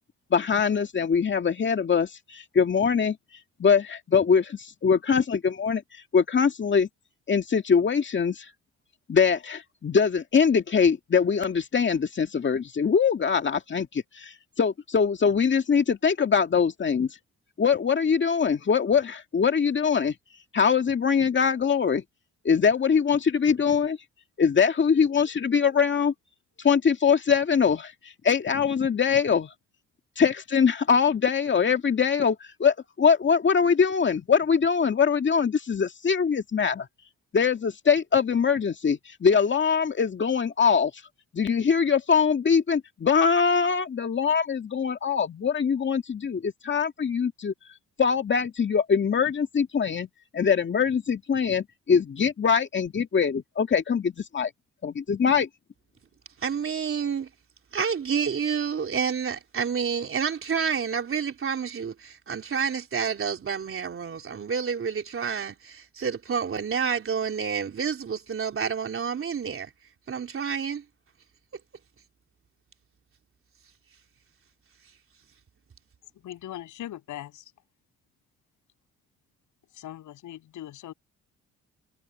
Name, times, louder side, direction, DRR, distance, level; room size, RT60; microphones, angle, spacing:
voice 1, 0.3-3.2 3.6-5.8 6.1-6.9 7.3-8.5 9.1-17.1 17.6-20.1 20.5-22.0 22.4-24.0 24.4-26.1 26.6-27.9 28.2-29.5 30.2-36.9 37.3-40.9 41.3-47.5 48.0-50.1 50.3-54.5 54.8-55.5, left 6 dB, 40° left, 2.2 m, -23 dB
voice 2, 56.4-57.3 57.7-69.7 70.1-70.8, right 6 dB, 45° right, 3.6 m, -29 dB
voice 3, 76.2-77.4 79.7-80.9, left 12 dB, 80° left, 7.3 m, -40 dB
cardioid pair, 90°, 30 cm